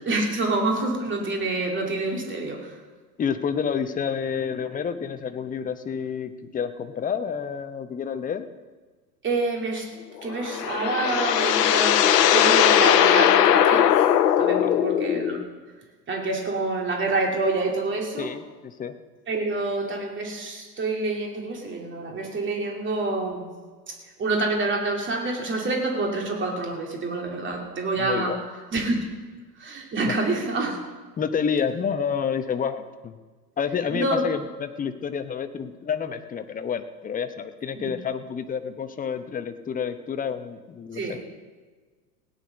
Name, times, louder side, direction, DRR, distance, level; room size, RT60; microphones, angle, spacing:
voice 1, 0.1-2.8 9.2-9.9 10.2-14.1 14.4-15.4 16.1-18.3 19.3-23.5 23.9-28.4 28.7-29.0 29.6-30.8 33.9-34.2 37.7-37.9 40.9-41.2, right 2 dB, 25° right, 1 dB, 2.9 m, -27 dB
voice 2, 3.2-8.5 14.6-14.9 18.2-19.0 28.0-28.4 30.1-30.2 31.2-33.2 33.6-41.2, left 7 dB, 15° left, 9 dB, 0.8 m, -29 dB
sound 1, 10.2-15.4, left 10 dB, 70° left, 1.0 m, -19 dB
17.0 x 9.8 x 5.2 m, 1.4 s
figure-of-eight pair, 90°, 50 cm